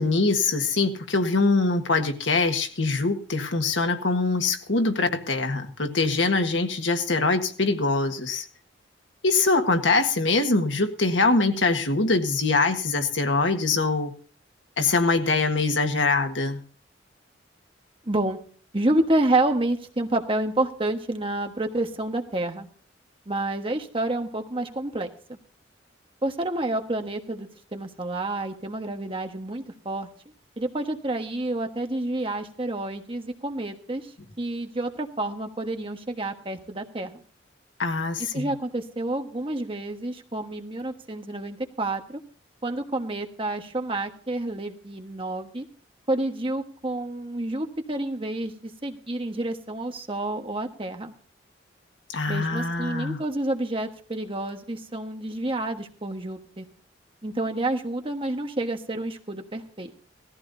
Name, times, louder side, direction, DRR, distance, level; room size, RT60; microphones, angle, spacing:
voice 1, 0.0-8.5 9.2-14.1 14.8-16.6 37.8-38.5 52.1-53.2, left 3 dB, 80° left, 6 dB, 1.6 m, -23 dB
voice 2, 18.1-18.4 18.7-22.7 23.3-25.4 26.2-30.1 30.6-34.1 34.4-37.2 38.3-42.2 42.6-45.6 46.1-51.1 52.3-56.6 57.2-59.9, right 2 dB, 30° right, 5 dB, 1.4 m, -29 dB
18.5 x 14.5 x 2.7 m, 0.42 s
head